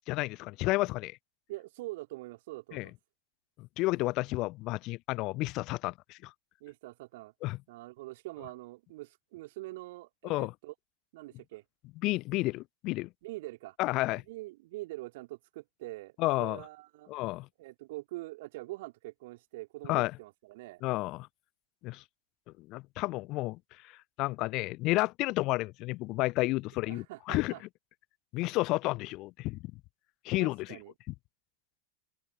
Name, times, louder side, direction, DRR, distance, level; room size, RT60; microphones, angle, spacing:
voice 1, 0.1-1.2 2.7-2.9 3.6-6.3 7.4-7.6 10.2-10.5 12.0-13.1 13.8-14.2 16.2-16.6 17.1-17.5 19.9-20.1 20.8-21.3 21.8-22.0 22.6-23.6 24.2-27.5 28.3-29.6 30.2-30.8, left 21 dB, 40° left, 0.5 m, -31 dB
voice 2, 1.5-2.9 6.6-7.3 7.7-10.7 11.1-11.6 13.2-13.8 14.3-17.1 17.6-20.8 26.9-27.6 30.4-30.9, right 19 dB, 50° right, 3.2 m, -44 dB
open air
figure-of-eight pair, 90°, 0 cm